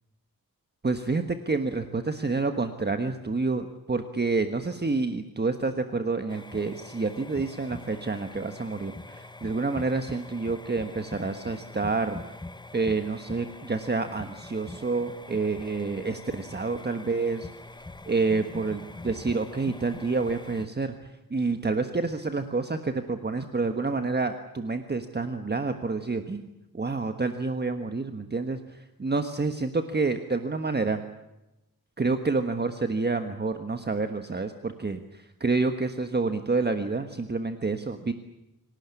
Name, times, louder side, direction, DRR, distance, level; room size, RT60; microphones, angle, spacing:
voice 1, 0.8-12.2 12.7-17.5 18.1-20.9 21.3-26.5 26.7-31.0 32.0-38.1, right 3 dB, 30° right, 7 dB, 1.4 m, -28 dB
sound 1, 6.3-20.7, left 2 dB, 15° left, 0.9 m, -44 dB
26.5 x 18.0 x 9.8 m, 0.95 s
wide cardioid pair, 130°, 34 cm